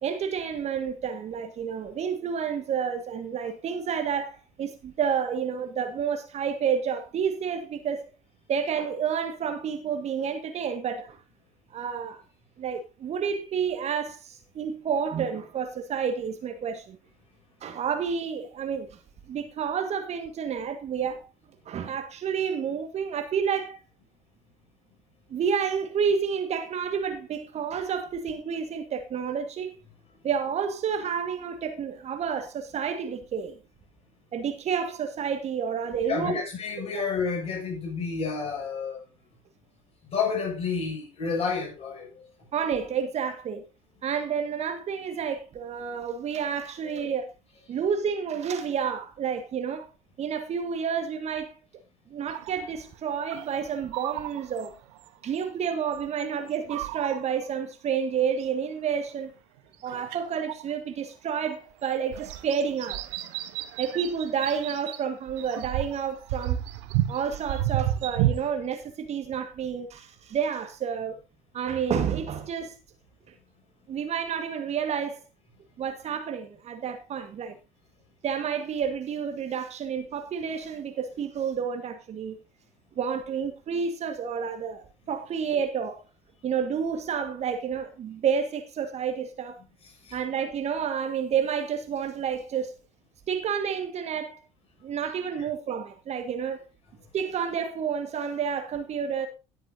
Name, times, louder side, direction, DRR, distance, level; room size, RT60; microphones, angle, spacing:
voice 1, 0.0-8.1 8.5-11.2 11.7-12.2 12.6-17.0 17.6-19.0 19.3-21.3 21.6-23.8 25.3-29.7 30.2-33.6 34.3-36.4 42.5-43.6 44.0-47.2 47.7-49.9 50.2-51.5 52.1-54.7 55.2-59.3 59.8-63.0 63.8-66.6 67.1-71.2 71.5-72.8 73.9-75.2 75.8-77.5 78.2-82.4 82.9-86.0 86.4-89.6 90.1-92.8 93.3-94.4 94.8-96.6 97.1-99.3, right 7 dB, 40° right, 1.7 m, -30 dB
voice 2, 36.1-39.0 40.0-42.3 46.8-47.2 89.8-90.2 95.4-95.5, left 5 dB, 35° left, 7.0 m, -30 dB
sound 1, 52.3-52.7 53.3-55.1 55.4-56.2 56.5-57.4 58.4-58.5 59.7-60.6 61.6-61.7 62.1-65.0 65.3-68.5, right 13 dB, 65° right, 1.1 m, -31 dB
17.0 x 8.0 x 2.7 m
figure-of-eight pair, 60°, 17 cm